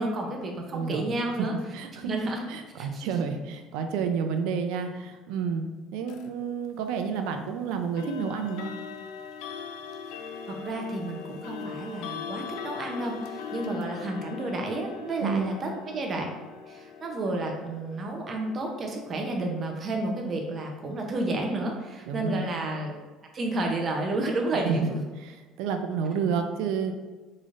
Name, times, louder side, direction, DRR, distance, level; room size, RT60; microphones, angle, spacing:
voice 1, 0.0-1.5 2.0-2.4 2.8-3.1 10.5-16.3 16.7-22.9 23.3-24.9, right 2 dB, 35° right, 1 dB, 0.6 m, -31 dB
voice 2, 0.7-1.0 1.7-2.1 2.5-5.7 5.9-8.7 15.2-15.6 22.1-22.5 24.5-26.9, right 6 dB, 80° right, 6 dB, 0.4 m, -30 dB
sound 1, 6.1-6.3 8.0-20.8, left 6 dB, 85° left, 0.3 m, -41 dB
3.9 x 3.1 x 2.5 m, 1.3 s
cardioid pair, 135°, 0 cm